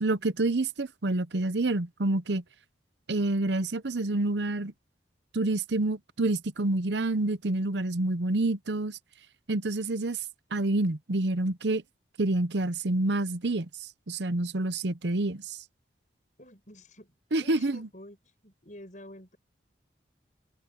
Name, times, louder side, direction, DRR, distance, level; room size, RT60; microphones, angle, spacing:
voice 1, 0.0-2.4 3.1-4.7 5.3-9.0 9.5-10.2 10.5-11.8 12.2-13.7 14.1-15.6 17.3-17.8, right 2 dB, 70° right, 0.9 m, -28 dB
voice 2, 16.4-19.4, left 1 dB, 40° left, 7.9 m, -49 dB
head